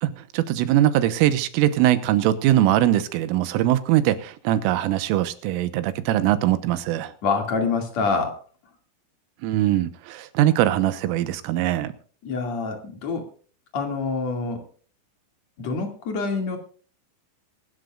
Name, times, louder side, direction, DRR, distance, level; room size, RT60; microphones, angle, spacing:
voice 1, 0.0-7.1 9.4-11.9, right 13 dB, 80° right, 11 dB, 3.6 m, -21 dB
voice 2, 7.2-8.4 12.2-13.3 13.7-14.6 15.6-16.6, left 4 dB, 45° left, 4 dB, 2.7 m, -26 dB
24.5 x 12.0 x 2.4 m, 0.41 s
omnidirectional pair, 5.9 m